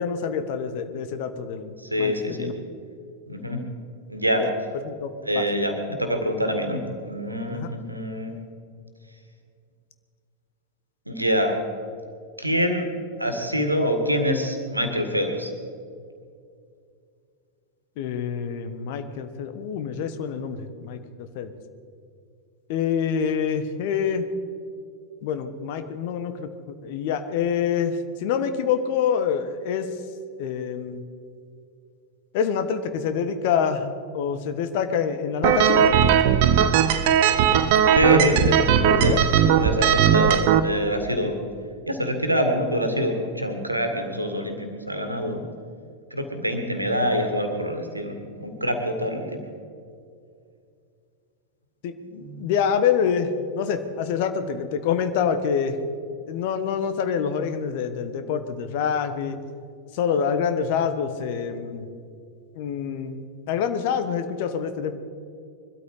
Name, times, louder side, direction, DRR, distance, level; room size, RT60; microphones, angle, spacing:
voice 1, 0.0-2.5 4.4-4.5 4.9-5.5 7.5-7.7 18.0-21.5 22.7-24.3 25.2-29.9 30.4-31.0 32.3-35.9 38.5-38.6 38.9-39.2 39.4-39.7 51.8-55.8 56.3-59.4 59.9-61.9 62.5-65.0, left 7 dB, 50° left, 9 dB, 1.2 m, -26 dB
voice 2, 1.8-2.5 3.3-3.6 4.1-4.5 5.2-8.3 11.1-11.6 12.4-12.9 13.2-15.5 37.9-38.6 39.0-39.2 39.6-41.4 41.9-45.4 46.1-49.4 52.1-52.5, equal, 85° right, 6 dB, 1.9 m, -25 dB
sound 1, 35.4-40.6, right 8 dB, 50° right, 0.9 m, -18 dB
22.5 x 13.0 x 4.9 m, 2.4 s
figure-of-eight pair, 90°, 0 cm